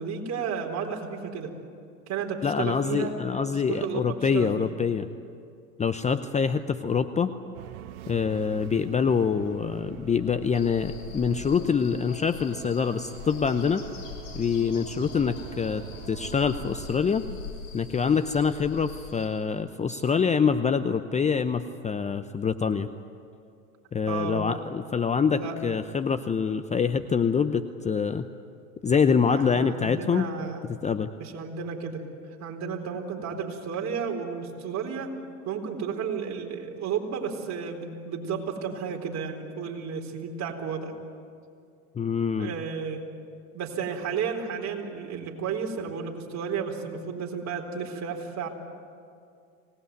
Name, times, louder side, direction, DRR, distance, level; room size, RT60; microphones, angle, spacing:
voice 1, 0.0-1.5 2.1-3.1 3.5-4.7 24.1-24.5 25.3-25.7 29.2-30.6 31.2-32.0 32.4-35.1 35.5-40.9 42.4-43.0 43.5-48.5, right 6 dB, 40° right, 2 dB, 4.1 m, -32 dB
voice 2, 2.4-5.1 5.8-7.3 8.1-13.8 14.3-17.3 17.7-22.9 23.9-28.3 28.8-30.3 30.7-31.1 42.0-42.5, left 6 dB, 15° left, 10 dB, 0.7 m, -25 dB
sound 1, 7.5-17.1, right 12 dB, 75° right, 1.2 m, -44 dB
sound 2, 10.5-19.3, left 4 dB, 65° left, 6.9 m, -42 dB
25.0 x 19.5 x 9.4 m, 2.4 s
hypercardioid pair, 100°, 43 cm